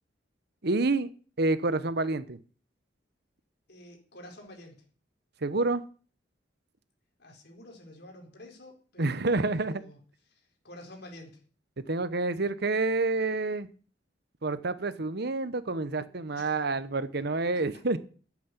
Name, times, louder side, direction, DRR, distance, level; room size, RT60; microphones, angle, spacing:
voice 1, 0.6-1.1 1.4-2.4 5.4-5.8 9.0-9.8 11.9-13.7 14.4-18.0, right 3 dB, 60° right, 14 dB, 1.0 m, -28 dB
voice 2, 3.7-4.8 7.2-10.0 10.3-11.4 16.2-16.5, left 1 dB, 60° left, 2 dB, 4.5 m, -49 dB
11.5 x 8.6 x 8.3 m, 0.40 s
head